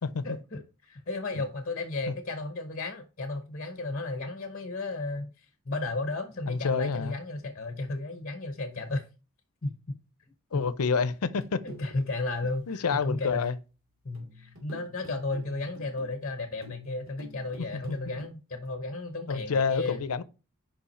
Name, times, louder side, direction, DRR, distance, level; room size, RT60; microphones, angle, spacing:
voice 1, 0.2-9.1 9.6-10.0 10.5-10.6 11.6-13.5 14.0-20.0, left 2 dB, 40° left, 0.9 m, -34 dB
voice 2, 6.5-7.2 10.5-11.6 12.7-13.6 17.6-18.0 19.3-20.2, left 5 dB, 85° left, 0.6 m, -28 dB
sound 1, 11.2-13.2 14.1-18.3, left 3 dB, 65° right, 2.6 m, -49 dB
5.7 x 5.3 x 4.2 m
head